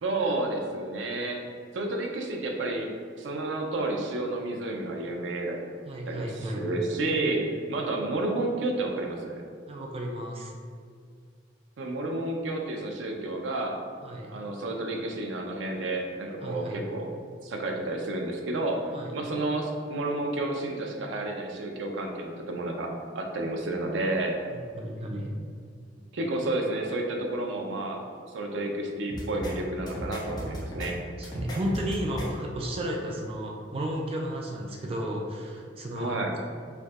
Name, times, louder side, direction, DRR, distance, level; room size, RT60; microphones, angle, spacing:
voice 1, 0.0-1.4 1.7-2.9 3.2-5.6 6.1-9.4 11.8-13.8 14.3-17.1 17.4-22.9 23.1-24.4 26.1-28.0 28.3-31.0 36.0-36.3, right 2 dB, 90° right, 2 dB, 0.5 m, -30 dB
voice 2, 5.9-6.7 9.7-10.5 14.0-14.4 16.4-16.8 18.9-19.1 24.5-25.3 31.2-36.2, equal, 30° right, 0 dB, 0.4 m, -33 dB
sound 1, 29.1-29.5 29.9-30.9 31.2-32.3, equal, 25° left, 0.7 m, -36 dB
4.5 x 2.7 x 2.4 m, 2.1 s
head